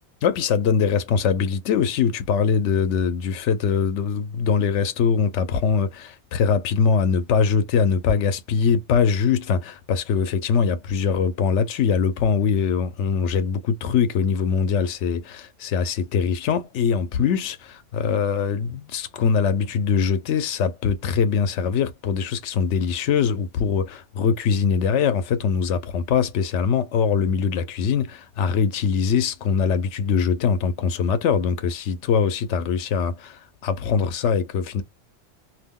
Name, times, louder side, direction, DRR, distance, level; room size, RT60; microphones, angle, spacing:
voice 1, 0.2-34.8, left 6 dB, 85° left, 1.0 m, -22 dB
2.5 x 2.1 x 3.5 m
omnidirectional pair, 1.2 m